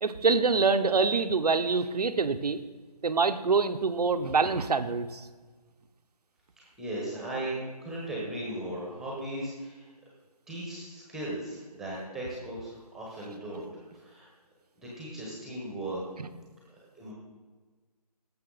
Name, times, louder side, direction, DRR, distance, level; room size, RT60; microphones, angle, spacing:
voice 1, 0.0-2.6 3.0-5.3 16.2-16.3, right 4 dB, 70° right, 10 dB, 0.9 m, -25 dB
voice 2, 6.6-9.9 10.5-13.7 13.9-14.3 14.8-16.0 17.0-17.1, right 1 dB, ahead, -4 dB, 1.1 m, -37 dB
17.0 x 6.9 x 4.0 m, 1.4 s
figure-of-eight pair, 165°, 21 cm